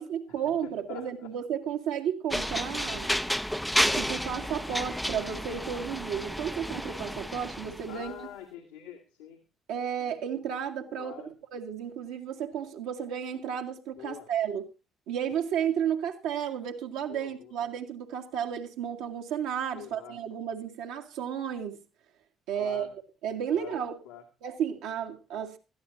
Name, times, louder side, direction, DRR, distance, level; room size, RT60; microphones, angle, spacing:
voice 1, 0.0-3.1 3.8-8.3 9.7-11.1 11.5-14.7 15.1-21.8 22.5-22.9 23.2-24.0 24.4-25.6, right 8 dB, 65° right, 1.9 m, -33 dB
voice 2, 0.6-1.3 7.9-9.4 9.8-9.9 11.0-11.4 14.0-14.3 17.1-17.6 19.7-20.2 22.5-22.9 23.5-23.8 24.0-24.2, left 10 dB, 70° left, 2.2 m, -45 dB
sound 1, 2.3-7.9, equal, 5° left, 0.8 m, -31 dB
20.5 x 13.5 x 2.7 m
figure-of-eight pair, 45°, 0 cm